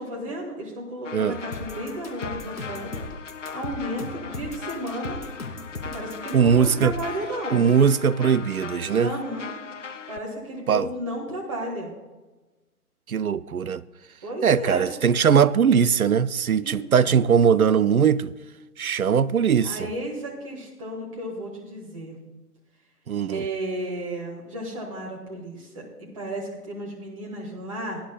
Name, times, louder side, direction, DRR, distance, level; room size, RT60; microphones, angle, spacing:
voice 1, 0.0-3.0 3.5-5.2 5.8-7.6 9.0-9.5 10.1-11.9 14.2-14.9 16.6-17.2 19.6-22.2 23.3-28.0, right 1 dB, 20° right, 1.7 m, -33 dB
sound 1, 1.0-10.2, left 6 dB, 55° left, 0.6 m, -39 dB
sound 2, 1.5-7.2, left 2 dB, 75° left, 2.5 m, -36 dB
voice 2, 6.3-6.9 7.5-9.1 10.7-10.9 13.1-13.8 14.4-18.3 18.8-19.9 23.1-23.4, right 7 dB, 65° right, 0.5 m, -20 dB
17.5 x 10.0 x 2.3 m
figure-of-eight pair, 145°, 46 cm